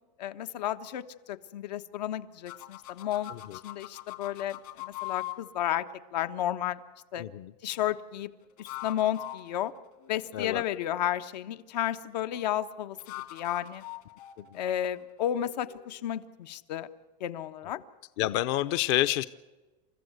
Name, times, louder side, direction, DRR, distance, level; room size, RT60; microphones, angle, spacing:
voice 1, 0.2-3.3 3.6-5.9 6.1-6.8 7.1-7.2 7.6-8.3 8.6-9.7 10.1-13.0 13.3-13.8 14.5-16.9 17.2-17.8, left 11 dB, 85° left, 10 dB, 1.4 m, -32 dB
sound 1, 2.5-5.4 8.4-10.6 13.0-15.9, left 17 dB, 60° left, 2.8 m, -42 dB
voice 2, 7.2-7.5 10.3-10.6 18.2-19.2, left 14 dB, 45° left, 14 dB, 0.6 m, -28 dB
29.5 x 14.0 x 8.0 m, 1.2 s
supercardioid pair, 175°, 21 cm